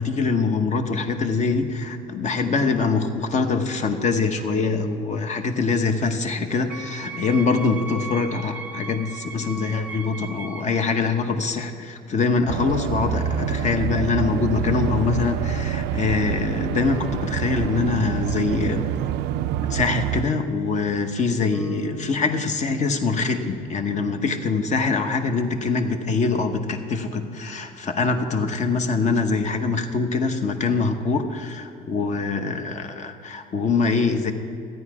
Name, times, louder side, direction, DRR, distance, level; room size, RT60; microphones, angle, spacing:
voice 1, 0.0-18.9 19.7-34.3, left 4 dB, 45° left, 6 dB, 1.0 m, -24 dB
Wind instrument woodwind instrument, 6.7-11.0, right 3 dB, 10° right, 0.8 m, -37 dB
sound 1, 12.5-20.2, right 9 dB, 85° right, 0.4 m, -27 dB
sound 2, 21.5-25.9, equal, 20° left, 1.3 m, -42 dB
14.0 x 9.2 x 4.8 m, 2.5 s
cardioid pair, 110°, 17 cm